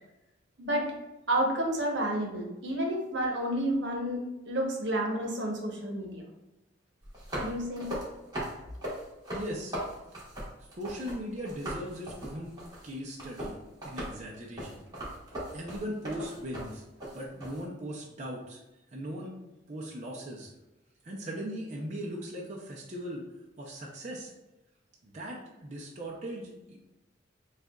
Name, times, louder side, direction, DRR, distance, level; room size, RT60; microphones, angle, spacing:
voice 1, 0.6-0.9 1.3-6.2 7.3-7.9, right 1 dB, 75° right, 0 dB, 0.9 m, -30 dB
sound 1, 7.0-11.2 11.4-17.6, right 1 dB, 20° right, 1.4 m, -38 dB
voice 2, 9.3-9.7 10.8-12.6 12.8-13.6 13.8-14.8 15.5-16.8 17.1-18.6 18.9-19.3 19.7-20.5 21.0-23.2 23.6-24.3 25.0-27.0, equal, 40° right, -3 dB, 0.6 m, -39 dB
6.5 x 2.4 x 2.3 m, 0.97 s
head